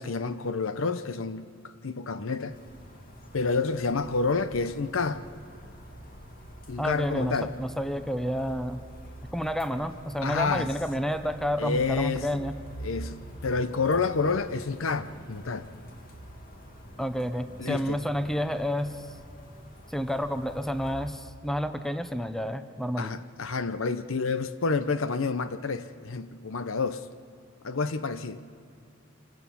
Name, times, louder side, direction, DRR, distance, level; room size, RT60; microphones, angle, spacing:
voice 1, 0.0-2.6 3.3-5.3 6.7-7.5 10.2-10.7 11.6-12.4 12.8-15.7 17.6-18.0 23.0-27.0 27.6-28.4, left 4 dB, 85° left, 0.8 m, -29 dB
sound 1, 2.5-21.1, equal, 45° left, 2.2 m, -45 dB
voice 2, 6.8-8.8 9.3-12.6 17.0-19.0 19.9-23.1, equal, ahead, 0.7 m, -30 dB
25.5 x 16.0 x 7.1 m
head